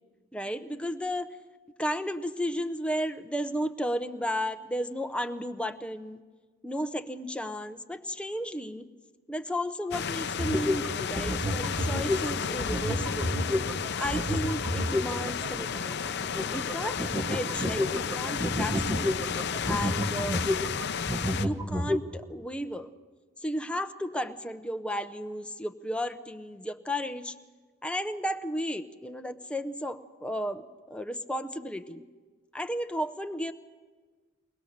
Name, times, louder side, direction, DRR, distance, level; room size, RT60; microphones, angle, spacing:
voice 1, 0.3-1.4 1.8-6.2 6.6-8.9 9.3-13.4 14.0-16.0 16.5-19.2 19.7-20.4 21.3-22.9 23.4-27.3 27.8-32.1 32.5-33.5, equal, 5° left, 7 dB, 0.8 m, -33 dB
sound 1, 9.9-21.5, left 7 dB, 55° left, 0.6 m, -33 dB
sound 2, 10.4-22.0, equal, 15° right, 1.5 m, -31 dB
22.5 x 20.5 x 6.7 m, 1.4 s
head